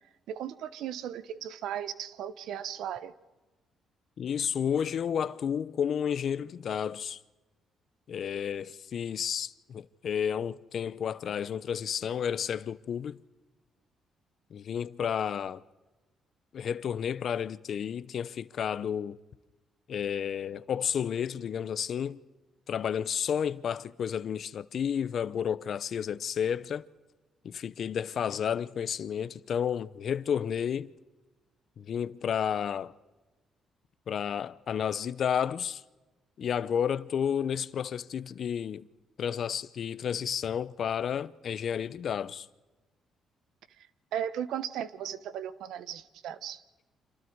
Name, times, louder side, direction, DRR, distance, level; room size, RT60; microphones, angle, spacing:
voice 1, 0.3-3.1 44.1-46.6, right 10 dB, 80° right, 1.1 m, -36 dB
voice 2, 4.2-7.2 8.1-13.2 14.5-15.6 16.5-19.2 19.9-22.2 22.7-26.8 27.4-30.9 31.8-32.9 34.1-35.8 36.4-38.9 39.2-42.5, left 8 dB, 60° left, 0.8 m, -31 dB
29.0 x 26.5 x 4.7 m
cardioid pair, 90°, 0 cm